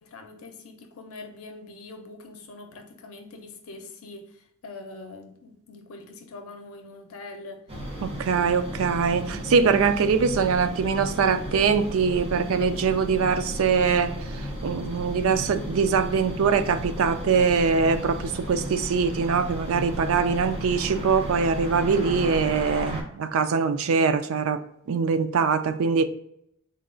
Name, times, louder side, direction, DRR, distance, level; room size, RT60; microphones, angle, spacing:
voice 1, 0.0-7.6, left 3 dB, 80° left, 0.6 m, -43 dB
sound 1, 7.7-23.0, equal, 25° right, 0.8 m, -34 dB
voice 2, 8.0-14.1 14.6-24.6 24.9-26.0, right 5 dB, 70° right, 0.4 m, -23 dB
4.0 x 2.3 x 3.7 m
head